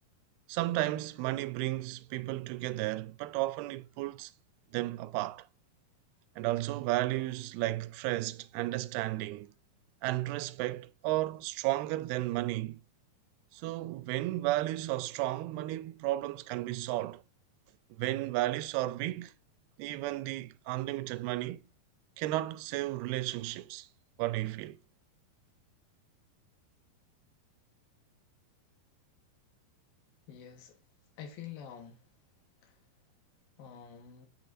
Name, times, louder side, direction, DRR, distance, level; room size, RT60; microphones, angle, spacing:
voice 1, 0.5-4.3 4.7-5.5 6.4-9.5 10.0-12.8 13.5-17.2 18.0-19.3 19.8-21.6 22.2-23.9 24.2-24.8, right 17 dB, 90° right, 2.5 m, -33 dB
voice 2, 30.3-30.8 31.2-32.1 32.6-32.8 33.6-34.3, left 8 dB, 75° left, 2.8 m, -47 dB
7.6 x 6.5 x 2.5 m
omnidirectional pair, 4.4 m